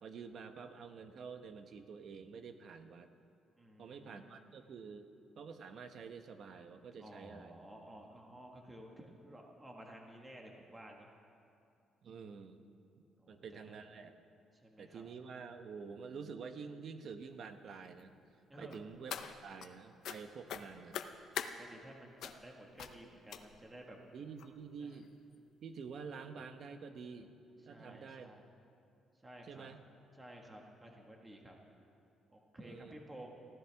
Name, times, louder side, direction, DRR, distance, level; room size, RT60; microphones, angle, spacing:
voice 1, 0.0-3.1 3.8-7.6 12.0-12.6 13.3-14.1 14.8-18.2 18.6-21.0 24.1-25.1 25.6-27.3 27.7-28.3 29.4-29.8 32.6-33.0, right 5 dB, 55° right, 8 dB, 1.0 m, -48 dB
voice 2, 3.6-4.5 7.0-11.1 13.2-13.8 14.5-15.0 18.5-18.8 21.6-24.0 24.8-24.9 27.7-28.4 29.2-29.7 30.2-31.5 32.3-33.4, right 1 dB, 15° right, 0 dB, 1.7 m, -53 dB
sound 1, 18.7-19.7 20.0-20.2 20.5-21.5 22.2-22.5 22.8-23.0 23.3-23.7 24.4-24.5 24.9-25.1 25.3-25.4, left 9 dB, 70° left, 0.8 m, -42 dB
24.0 x 15.5 x 3.5 m, 2.6 s
cardioid pair, 135°, 0 cm